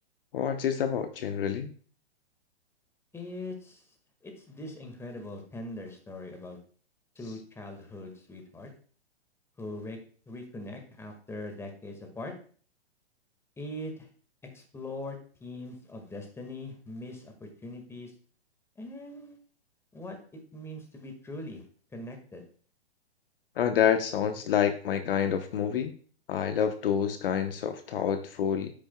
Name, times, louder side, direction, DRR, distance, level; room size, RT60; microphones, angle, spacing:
voice 1, 0.3-1.7 23.6-25.9 26.3-28.7, left 8 dB, 55° left, 8 dB, 0.9 m, -28 dB
voice 2, 3.1-3.8 4.2-6.6 7.1-8.7 9.6-10.0 10.3-12.3 13.6-14.1 14.5-18.1 18.8-19.4 19.9-20.2 20.5-21.6 21.9-22.4, left 1 dB, 10° left, 4 dB, 1.7 m, -41 dB
10.0 x 8.9 x 2.2 m, 0.43 s
figure-of-eight pair, 115°, 33 cm